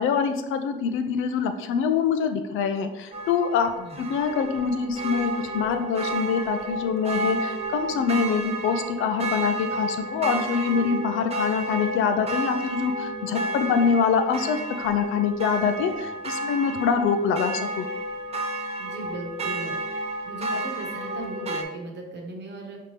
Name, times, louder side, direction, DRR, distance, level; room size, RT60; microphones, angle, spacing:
voice 1, 0.0-3.7 4.0-17.9, left 6 dB, 85° left, 8 dB, 0.5 m, -25 dB
sound 1, 3.1-21.6, right 2 dB, 30° right, 0.6 m, -31 dB
voice 2, 3.8-4.1 18.8-19.7 20.2-22.8, right 2 dB, 60° right, 2 dB, 1.1 m, -37 dB
5.1 x 2.8 x 3.2 m, 0.97 s
cardioid pair, 90°, 20 cm